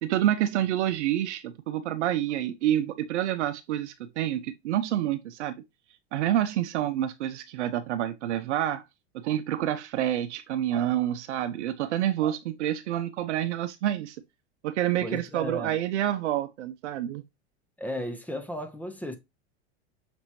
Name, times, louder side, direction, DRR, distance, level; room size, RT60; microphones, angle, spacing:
voice 1, 0.0-5.6 6.1-8.8 9.1-14.2 14.6-17.2, right 12 dB, 80° right, 0.6 m, -28 dB
voice 2, 15.0-15.8 17.8-19.2, left 1 dB, 5° left, 0.7 m, -35 dB
6.0 x 3.0 x 2.6 m
hypercardioid pair, 105°, 34 cm